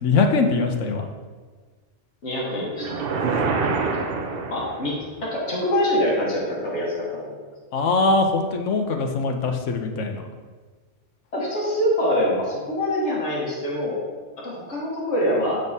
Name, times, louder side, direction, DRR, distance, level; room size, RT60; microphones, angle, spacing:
voice 1, 0.0-1.0 7.7-10.3, left 3 dB, 90° left, 4 dB, 1.0 m, -22 dB
voice 2, 2.2-3.2 3.5-3.7 4.1-4.9 5.2-7.4 11.3-14.0 14.4-15.6, equal, 75° left, -4 dB, 1.5 m, -25 dB
sound 1, 2.8-5.1, right 4 dB, 60° right, 0.7 m, -26 dB
7.7 x 5.3 x 2.7 m, 1.5 s
omnidirectional pair, 1.2 m